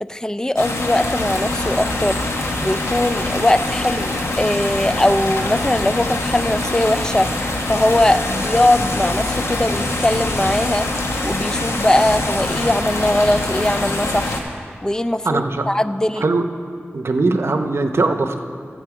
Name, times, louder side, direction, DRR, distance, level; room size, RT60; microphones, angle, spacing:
voice 1, 0.0-2.2 2.6-7.3 7.7-10.9 11.2-14.4 14.8-16.2, left 1 dB, 15° left, 12 dB, 0.3 m, -20 dB
sound 1, 0.6-14.4, left 2 dB, 85° left, 1.1 m, -24 dB
sound 2, 7.7-12.8, left 3 dB, 65° left, 0.7 m, -35 dB
voice 2, 15.2-15.7 16.2-16.4 16.9-18.4, right 3 dB, 65° right, 6 dB, 0.7 m, -20 dB
14.0 x 7.7 x 4.8 m, 2.1 s
wide cardioid pair, 80°, 5 cm